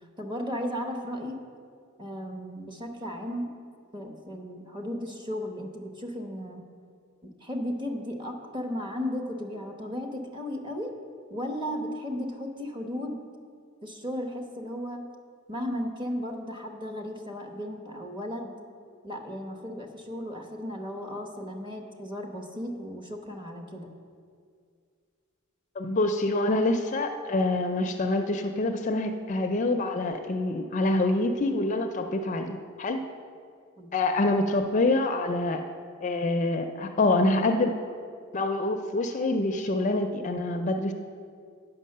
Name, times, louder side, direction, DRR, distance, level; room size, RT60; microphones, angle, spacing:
voice 1, 0.2-1.4 2.0-3.5 3.9-6.6 7.2-10.9 11.3-13.3 13.8-15.0 15.5-18.5 19.0-23.9 33.8-33.9, equal, 25° right, 3 dB, 1.0 m, -35 dB
voice 2, 25.8-33.0 33.9-35.6 36.0-37.7 38.3-40.9, left 2 dB, 35° left, 6 dB, 0.4 m, -26 dB
9.2 x 5.8 x 6.6 m, 2.2 s
head